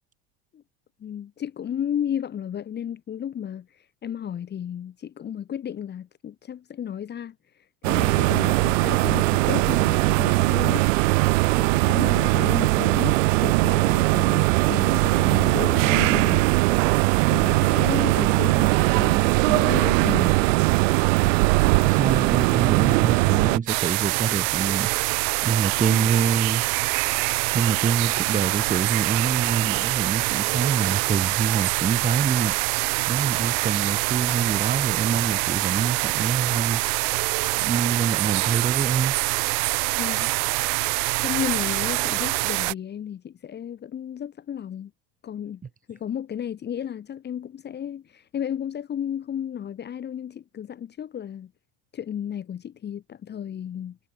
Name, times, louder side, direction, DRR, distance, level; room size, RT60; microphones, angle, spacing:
voice 1, 1.0-3.7 4.0-7.3 7.9-10.9 11.6-16.5 17.3-20.3 21.5-21.6 25.9-26.1 40.0-40.3 40.6-40.8 41.2-44.9 45.2-45.6 45.9-51.5 51.9-54.0, left 9 dB, 25° left, 1.9 m, -33 dB
sound 1, 7.8-23.6, right 24 dB, 75° right, 1.2 m, -20 dB
voice 2, 21.8-25.1 25.4-26.6 27.5-32.8 33.1-36.8 37.6-39.2, right 6 dB, 20° right, 3.4 m, -26 dB
sound 2, 23.7-42.7, right 39 dB, 60° right, 1.0 m, -25 dB
supercardioid pair, 135°, 38 cm